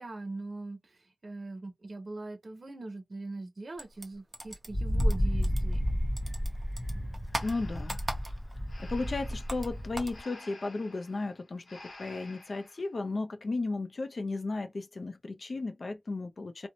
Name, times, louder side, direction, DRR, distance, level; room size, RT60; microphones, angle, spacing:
voice 1, 0.0-5.8, right 2 dB, 60° right, 0.7 m, -41 dB
sound 1, 3.8-5.9 6.2-8.7 8.9-10.2, right 1 dB, 25° right, 0.8 m, -40 dB
Wind, 4.7-10.2, equal, 30° left, 0.7 m, -31 dB
Breathing, 7.3-12.9, left 2 dB, 90° left, 0.9 m, -52 dB
voice 2, 7.4-8.0 8.8-16.7, left 3 dB, 65° left, 0.4 m, -35 dB
2.5 x 2.1 x 2.7 m
wide cardioid pair, 80°, 0 cm